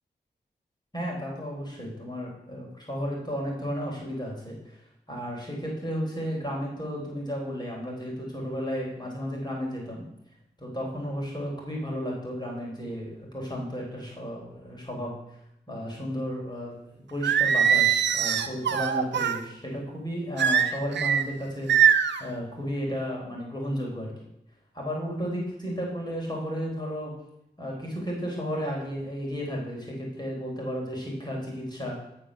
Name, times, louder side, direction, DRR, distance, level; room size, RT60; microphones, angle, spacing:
voice 1, 0.9-4.8 5.1-10.0 10.6-15.4 15.7-16.7 17.1-24.1 24.7-27.1 27.6-32.0, equal, 25° left, -2 dB, 4.0 m, -33 dB
Singing, 17.2-19.4 20.4-21.2 21.7-22.2, right 8 dB, 85° right, 0.6 m, -22 dB
13.5 x 4.6 x 6.4 m, 0.81 s
cardioid pair, 40°, 18 cm